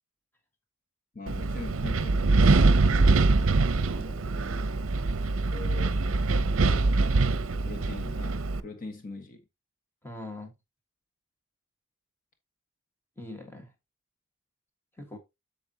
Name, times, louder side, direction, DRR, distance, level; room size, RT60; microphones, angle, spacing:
voice 1, 1.1-3.1 5.5-6.0 7.6-9.4, left 3 dB, 40° left, 1.4 m, -42 dB
Wind, 1.3-8.6, right 3 dB, 65° right, 0.6 m, -24 dB
voice 2, 3.9-4.6 10.0-10.5 13.2-13.7 15.0-15.2, left 1 dB, 10° left, 1.6 m, -43 dB
8.4 x 6.7 x 2.9 m
head